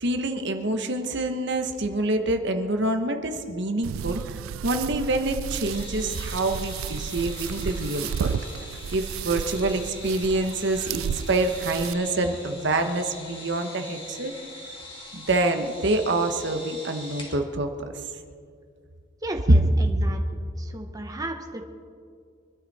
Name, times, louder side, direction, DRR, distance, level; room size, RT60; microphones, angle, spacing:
voice 1, 0.0-8.4 8.9-14.3 15.1-17.7, right 2 dB, 60° right, 6 dB, 1.2 m, -26 dB
sound 1, 3.8-11.9, right 8 dB, 90° right, 0.3 m, -33 dB
sound 2, 5.6-17.4, left 2 dB, 25° left, 2.4 m, -43 dB
voice 2, 19.2-20.2 20.6-21.6, right 1 dB, 20° right, 3 dB, 1.1 m, -34 dB
24.5 x 12.5 x 4.2 m, 2.2 s
head